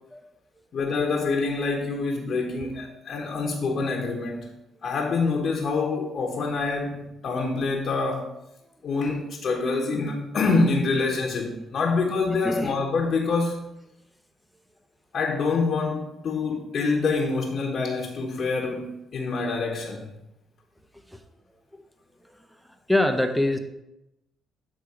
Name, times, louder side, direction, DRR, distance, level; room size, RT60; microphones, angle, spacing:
voice 1, 0.7-4.5 4.8-8.3 8.8-13.6 15.1-20.2, left 4 dB, 55° left, 0 dB, 1.1 m, -26 dB
voice 2, 22.9-23.6, left 1 dB, ahead, 6 dB, 0.7 m, -25 dB
8.5 x 3.6 x 4.9 m, 0.88 s
cardioid pair, 85°, 0 cm